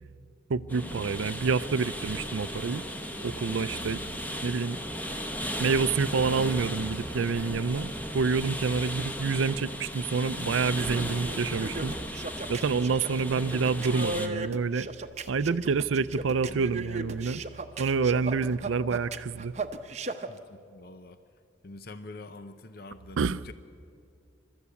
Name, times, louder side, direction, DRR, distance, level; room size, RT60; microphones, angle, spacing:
voice 1, 0.5-2.8 3.2-4.0 4.4-4.8 5.6-11.9 12.5-14.9 15.3-17.4 17.8-19.5 23.2-23.4, right 5 dB, 80° right, 0.5 m, -28 dB
sound 1, 0.7-14.3, equal, 10° left, 1.1 m, -36 dB
sound 2, 10.7-20.3, right 3 dB, 35° right, 0.8 m, -36 dB
voice 2, 20.3-21.2 21.6-23.5, left 2 dB, 50° left, 0.8 m, -45 dB
28.5 x 13.0 x 8.4 m
head